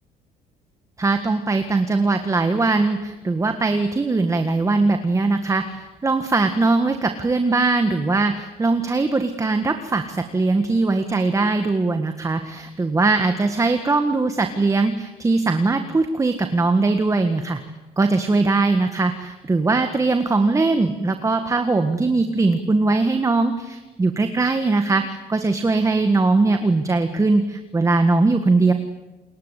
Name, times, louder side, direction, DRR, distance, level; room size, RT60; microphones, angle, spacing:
voice 1, 1.0-17.6 18.0-28.7, right 3 dB, 20° right, 7 dB, 1.7 m, -20 dB
29.0 x 21.0 x 8.4 m, 1.1 s
cardioid pair, 110°, 17 cm